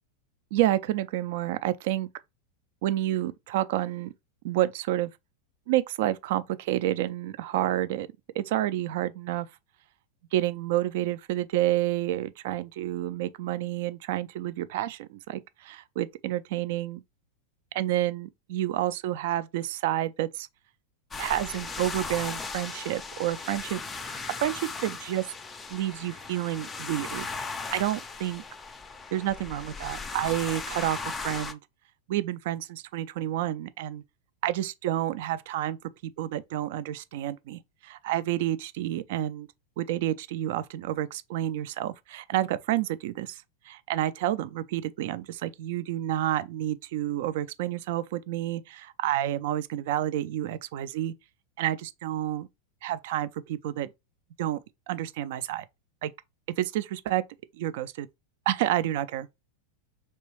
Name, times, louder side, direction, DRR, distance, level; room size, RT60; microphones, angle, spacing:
voice 1, 0.5-2.1 2.8-4.1 4.4-5.1 5.7-8.1 8.4-9.5 10.3-17.0 17.7-20.5 21.2-25.2 25.7-27.3 27.7-28.4 29.1-31.6 32.1-34.0 34.4-35.8 36.0-39.5 39.8-51.1 51.6-52.5 52.8-53.9 54.4-54.6 54.9-55.6 56.0-56.1 56.6-57.2 57.6-58.1 58.5-59.3, right 13 dB, 50° right, 0.3 m, -29 dB
sound 1, 21.1-31.5, left 4 dB, 15° left, 0.4 m, -37 dB
3.2 x 3.0 x 3.0 m
figure-of-eight pair, 90°, 0 cm